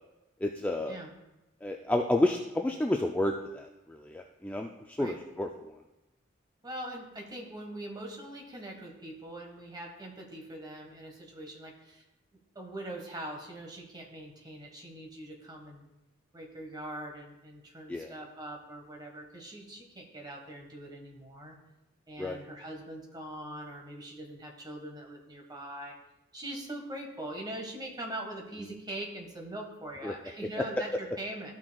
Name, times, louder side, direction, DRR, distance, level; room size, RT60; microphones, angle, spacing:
voice 1, 0.4-1.0 1.6-5.5 17.9-18.1 22.2-22.4 30.0-30.1, left 1 dB, 10° left, 2 dB, 0.3 m, -30 dB
voice 2, 6.6-12.0 12.5-15.8 16.3-21.6 22.1-26.0 26.3-31.6, right 1 dB, 20° right, 1 dB, 1.2 m, -42 dB
13.0 x 6.1 x 2.3 m, 0.97 s
head